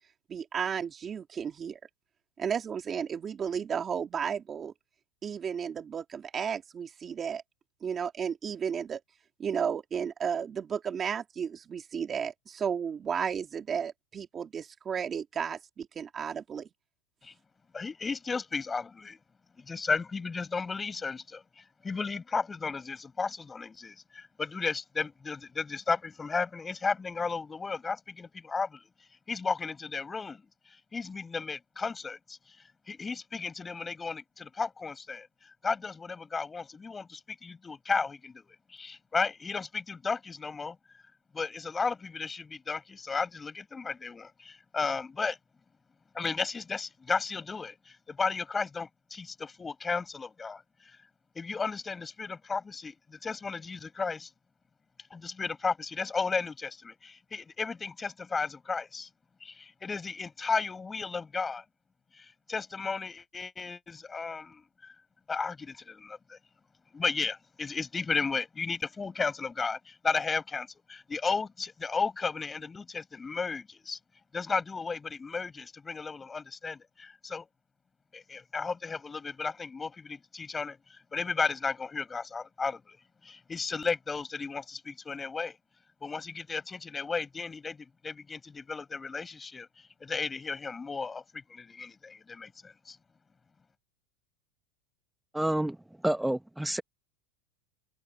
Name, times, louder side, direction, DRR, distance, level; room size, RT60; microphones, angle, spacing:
voice 1, 0.3-1.8 2.4-4.7 5.2-7.4 7.8-9.0 9.4-16.7, right 7 dB, 25° right, 2.7 m, -33 dB
voice 2, 17.7-19.2 19.6-32.6 32.9-35.3 35.6-40.8 41.3-45.4 46.1-51.0 51.4-54.3 55.1-59.1 59.4-61.6 62.2-64.9 65.3-66.4 66.9-74.0 74.3-77.5 78.1-83.0 83.2-85.6 86.0-93.0, left 4 dB, 15° left, 7.0 m, -34 dB
voice 3, 95.3-95.8 96.0-96.8, right 1 dB, 5° right, 1.0 m, -28 dB
open air
supercardioid pair, 140°, 0 cm